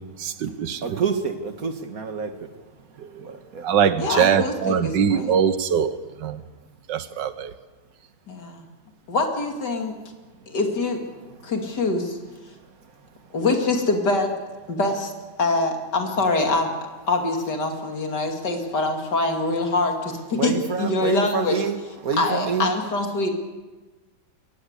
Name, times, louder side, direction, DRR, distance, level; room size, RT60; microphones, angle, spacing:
voice 1, 0.2-1.0 3.0-3.4 3.6-6.4 6.9-7.5, right 8 dB, 80° right, 12 dB, 1.7 m, -23 dB
voice 2, 0.8-2.5 3.2-3.7 11.2-11.5 20.3-22.7, right 5 dB, 55° right, 7 dB, 1.9 m, -28 dB
voice 3, 4.0-5.3 8.3-8.6 9.1-9.9 10.5-11.0 11.4-12.2 13.3-14.3 14.7-15.1 15.4-16.7 17.1-20.5 20.8-21.6 22.2-23.3, left 3 dB, 70° left, 3 dB, 3.2 m, -24 dB
22.0 x 17.0 x 8.2 m, 1.2 s
omnidirectional pair, 1.9 m